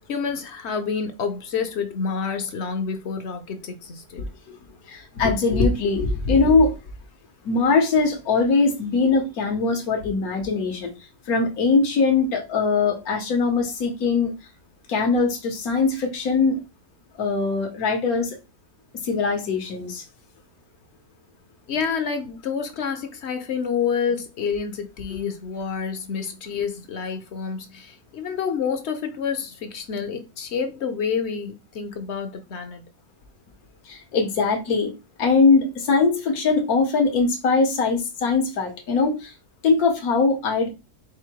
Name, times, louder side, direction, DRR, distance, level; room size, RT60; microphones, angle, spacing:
voice 1, 0.1-4.3 21.7-32.8, left 6 dB, 55° left, 0.9 m, -28 dB
voice 2, 4.9-6.7 7.4-10.9 11.3-14.3 14.9-16.6 17.2-18.3 19.1-20.0 25.1-25.2 33.9-34.9 35.2-39.2 39.6-40.7, left 4 dB, 75° left, 1.5 m, -21 dB
4.9 x 2.1 x 4.5 m
omnidirectional pair, 1.6 m